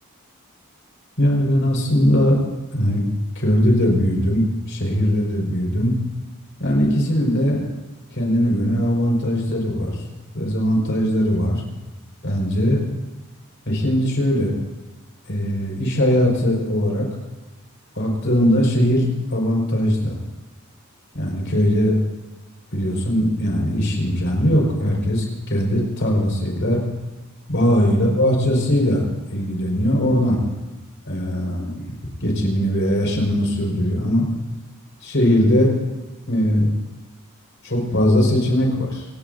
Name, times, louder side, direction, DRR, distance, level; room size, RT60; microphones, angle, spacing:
voice 1, 1.2-2.4 2.7-3.0 3.4-6.0 6.6-7.7 8.1-10.0 10.3-11.6 12.2-12.8 13.7-14.6 15.3-17.1 18.0-20.2 21.1-22.0 22.7-26.8 27.5-29.0 29.3-30.4 31.1-31.8 32.2-34.3 35.0-35.8 36.3-36.7 37.6-39.1, equal, 60° left, 0 dB, 5.3 m, -20 dB
28.0 x 17.5 x 2.7 m, 1.1 s
head